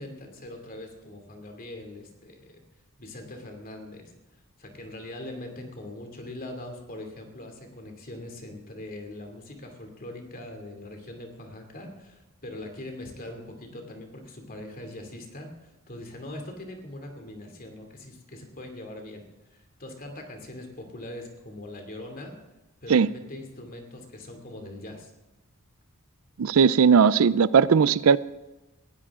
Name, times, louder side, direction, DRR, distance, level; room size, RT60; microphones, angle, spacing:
voice 1, 0.0-2.6 3.0-4.1 4.6-19.2 19.5-22.3 22.8-25.1, left 1 dB, 40° left, 4 dB, 2.7 m, -41 dB
voice 2, 26.4-28.2, right 6 dB, 70° right, 18 dB, 0.4 m, -18 dB
19.0 x 16.0 x 3.7 m, 1.0 s
head